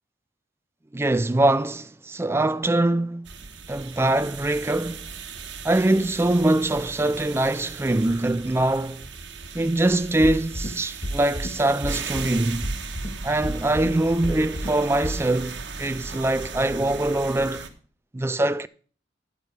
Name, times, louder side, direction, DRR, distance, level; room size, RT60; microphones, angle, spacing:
voice 1, 0.9-3.3 3.7-5.1 5.6-9.1 9.5-12.7 13.2-17.7 18.1-18.7, right 1 dB, 15° right, 0.4 m, -23 dB
sound 1, 3.2-17.7, right 5 dB, 80° right, 1.2 m, -38 dB
sound 2, 10.2-10.7 11.0-11.5 11.8-12.3 12.6-13.1 13.4-13.9 14.2-14.7 15.0-15.1, equal, 35° left, 1.7 m, -29 dB
10.5 x 8.2 x 4.8 m
head